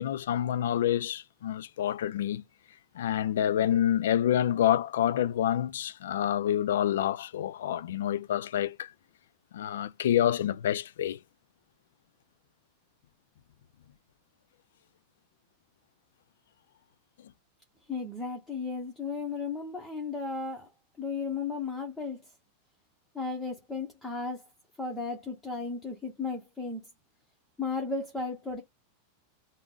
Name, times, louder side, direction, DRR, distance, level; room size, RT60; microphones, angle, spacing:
voice 1, 0.0-2.4 2.9-8.9 9.5-11.2, left 11 dB, 85° left, 0.3 m, -27 dB
voice 2, 17.9-20.7 21.0-22.2 23.1-24.5 24.8-26.9 27.6-28.6, left 4 dB, 5° left, 0.8 m, -34 dB
3.6 x 2.1 x 3.7 m
supercardioid pair, 155°, 0 cm